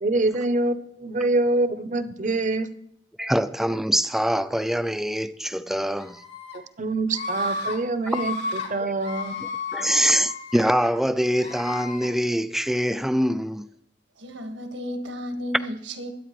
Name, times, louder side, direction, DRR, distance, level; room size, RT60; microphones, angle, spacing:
voice 1, 0.0-2.7 6.8-9.4, right 2 dB, 40° right, 0.7 m, -25 dB
voice 2, 3.2-6.2 8.8-8.9 9.4-13.7, equal, ahead, 0.4 m, -24 dB
Screaming, 6.0-6.6 7.1-7.8 8.0-8.7 9.0-10.9 11.4-12.1, left 3 dB, 65° left, 2.8 m, -32 dB
voice 3, 14.2-16.1, equal, 90° right, 1.7 m, -33 dB
23.0 x 8.8 x 3.1 m
head